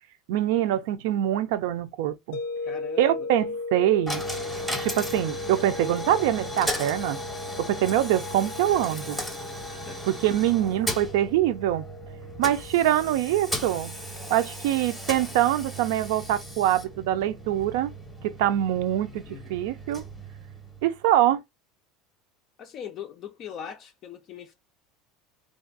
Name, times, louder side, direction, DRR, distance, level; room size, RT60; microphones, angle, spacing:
voice 1, 0.3-2.4 3.0-4.3 4.8-7.2 7.6-9.2 10.1-11.8 12.4-13.9 14.3-17.9 18.2-20.0 20.8-21.4, right 12 dB, 70° right, 0.5 m, -24 dB
sound 1, 2.3-17.3, left 3 dB, 80° left, 0.6 m, -38 dB
voice 2, 2.6-3.3 9.7-10.0 19.3-19.5 22.6-24.5, left 8 dB, 35° left, 0.4 m, -40 dB
Coin (dropping), 4.1-21.0, equal, ahead, 0.8 m, -36 dB
3.3 x 2.5 x 3.9 m
cardioid pair, 165°, 0 cm